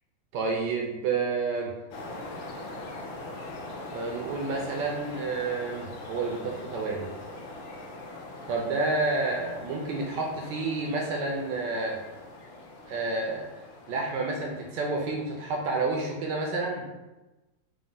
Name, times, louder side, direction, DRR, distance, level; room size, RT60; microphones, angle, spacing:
voice 1, 0.3-1.7 3.9-7.1 8.5-12.0 12.9-13.5 13.9-16.9, right 3 dB, 75° right, 0 dB, 1.0 m, -29 dB
sound 1, 1.9-15.8, left 2 dB, 75° left, 1.2 m, -42 dB
4.7 x 2.1 x 3.8 m, 1.1 s
omnidirectional pair, 2.4 m